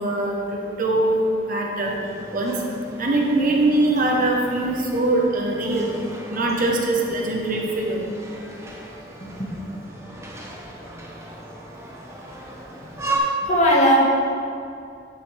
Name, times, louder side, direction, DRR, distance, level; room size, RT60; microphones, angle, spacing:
voice 1, 0.0-1.9 2.3-2.5 3.0-5.9 6.3-8.0, right 2 dB, 45° right, -1 dB, 1.2 m, -22 dB
sound 1, 1.8-13.2, right 2 dB, 15° right, 1.0 m, -37 dB
voice 2, 9.2-9.5 13.4-14.0, equal, 40° left, -5 dB, 1.9 m, -18 dB
10.5 x 8.0 x 3.5 m, 2.5 s
head